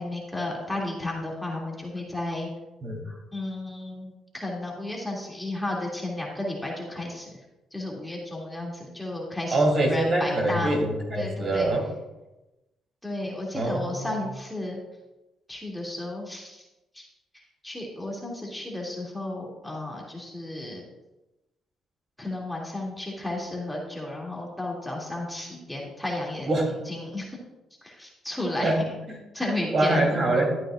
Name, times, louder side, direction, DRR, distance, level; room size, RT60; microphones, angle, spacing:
voice 1, 0.0-2.5 3.3-7.4 7.7-10.8 11.1-11.7 13.0-14.8 15.5-16.7 16.9-17.1 17.3-20.8 22.2-26.5 26.9-27.4 27.8-28.8 29.3-30.0, left 1 dB, 5° left, -3 dB, 2.5 m, -33 dB
voice 2, 2.8-3.1 9.5-11.8 13.5-14.1 26.5-26.7 28.6-28.8 29.1-29.2 29.7-30.5, right 2 dB, 50° right, 0 dB, 3.2 m, -24 dB
13.0 x 9.0 x 2.5 m, 1.0 s
cardioid pair, 90°, 0 cm